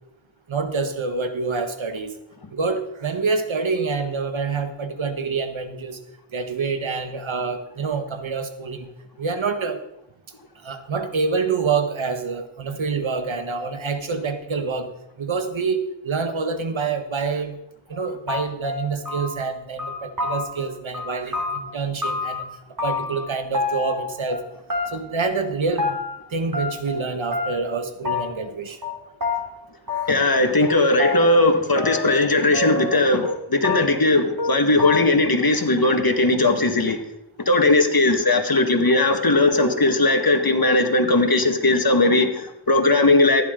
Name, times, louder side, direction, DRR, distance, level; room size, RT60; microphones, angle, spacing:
voice 1, 0.5-2.1 2.5-6.0 6.3-8.9 9.2-9.8 10.6-14.9 15.2-17.6 17.9-22.5 22.8-24.4 24.9-26.0 26.3-28.8 29.9-30.1, right 4 dB, 75° right, 8 dB, 1.4 m, -26 dB
sound 1, 17.9-18.0 18.3-19.5 19.8-20.7 20.9-22.4 22.8-23.3 23.5-24.4 24.7-25.2 25.4-26.2 26.5-27.1 27.3-27.8 28.0-28.5 28.8-28.9 29.2-29.4 29.9-30.4 30.6-32.2 32.5-33.4 33.6-34.1 34.4-34.5 34.8-35.3, left 3 dB, 45° right, 3.1 m, -27 dB
voice 2, 30.1-37.0 37.5-43.4, left 2 dB, 50° left, 5 dB, 1.9 m, -18 dB
15.0 x 11.0 x 3.9 m, 0.86 s
cardioid pair, 45°, 47 cm